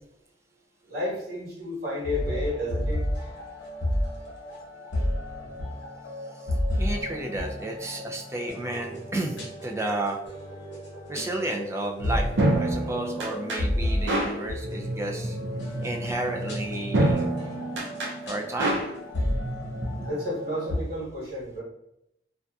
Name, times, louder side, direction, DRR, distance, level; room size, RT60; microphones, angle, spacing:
voice 1, 0.9-3.0 20.0-21.6, left 1 dB, 60° right, -7 dB, 1.3 m, -31 dB
sound 1, 2.0-20.8, left 1 dB, 90° left, 0.9 m, -32 dB
voice 2, 6.8-10.2 11.1-15.4 15.8-17.3 18.2-18.8, right 1 dB, 15° right, 1 dB, 0.3 m, -32 dB
sound 2, 12.0-20.1, right 1 dB, 80° right, 0.5 m, -29 dB
2.6 x 2.2 x 2.3 m, 0.81 s
head